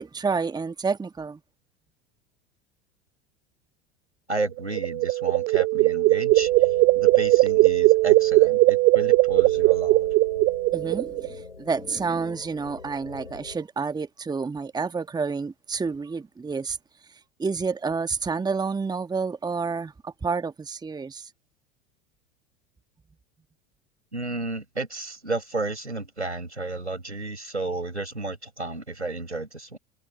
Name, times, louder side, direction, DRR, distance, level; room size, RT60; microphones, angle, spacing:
voice 1, 0.0-1.4 10.7-16.8 17.1-21.3, right 5 dB, 10° right, 1.4 m, -29 dB
voice 2, 4.3-6.5 6.9-10.0 24.1-29.8, right 2 dB, 90° right, 6.4 m, -32 dB
sound 1, 4.6-11.3, right 20 dB, 30° right, 0.4 m, -19 dB
sound 2, 6.3-13.6, left 4 dB, 85° left, 3.8 m, -42 dB
figure-of-eight pair, 80°, 33 cm